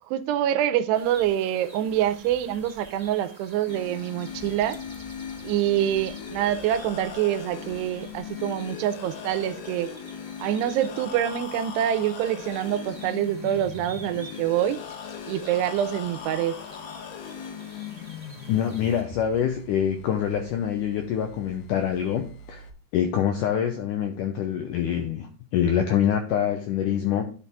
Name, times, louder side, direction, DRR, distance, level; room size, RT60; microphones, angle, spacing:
voice 1, 0.1-4.8 5.4-9.9 10.4-14.8 15.3-16.6, right 11 dB, 90° right, 2.8 m, -26 dB
sound 1, 0.9-19.0, right 2 dB, 20° right, 0.9 m, -49 dB
sound 2, 3.7-22.7, left 7 dB, 75° left, 2.6 m, -40 dB
voice 2, 18.5-22.7 22.9-27.2, left 9 dB, 90° left, 1.8 m, -25 dB
10.5 x 5.8 x 3.5 m
omnidirectional pair, 4.6 m